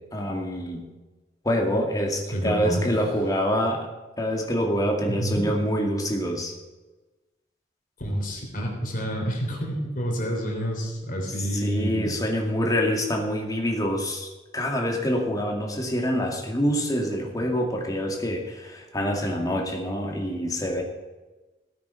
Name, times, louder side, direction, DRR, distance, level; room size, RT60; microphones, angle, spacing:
voice 1, 0.1-0.8 1.4-3.9 4.2-6.6 11.5-20.8, equal, 20° left, 1 dB, 2.2 m, -26 dB
voice 2, 2.3-2.9 5.1-5.4 8.0-12.1, equal, 45° left, 0 dB, 3.5 m, -28 dB
17.0 x 8.7 x 5.7 m, 1.2 s
head